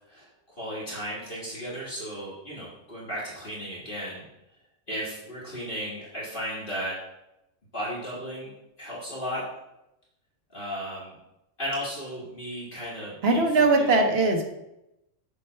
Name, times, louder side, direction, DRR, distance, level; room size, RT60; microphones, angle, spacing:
voice 1, 0.0-4.2 4.9-7.0 7.7-8.5 8.8-9.4 10.5-11.2 11.6-13.9, equal, 45° left, -7 dB, 1.7 m, -35 dB
voice 2, 13.2-14.4, right 3 dB, 55° right, 3 dB, 1.1 m, -20 dB
7.0 x 3.3 x 4.3 m, 0.87 s
omnidirectional pair, 1.3 m